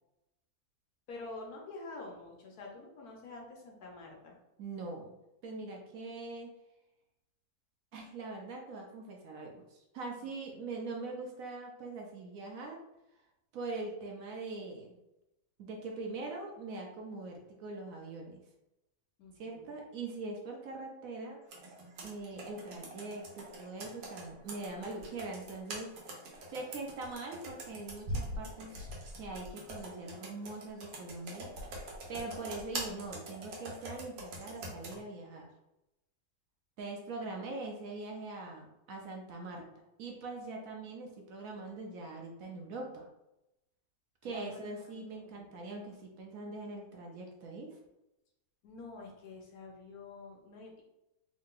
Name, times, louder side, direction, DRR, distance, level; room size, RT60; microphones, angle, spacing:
voice 1, 1.1-4.4 10.2-10.3 19.2-19.8 37.2-37.4 44.2-45.6 48.6-50.8, left 3 dB, 70° left, -1 dB, 1.3 m, -48 dB
voice 2, 4.6-5.1 5.4-6.5 7.9-12.8 13.5-15.0 15.6-18.4 19.4-21.4 22.0-26.0 26.5-28.7 29.2-31.5 32.1-35.5 36.8-39.7 40.0-43.1 44.2-47.8, right 3 dB, 65° right, 1 dB, 1.0 m, -42 dB
Computer keyboard, 21.5-35.0, right 1 dB, 85° right, 1.4 m, -44 dB
3.6 x 2.2 x 3.7 m, 0.91 s
omnidirectional pair, 1.7 m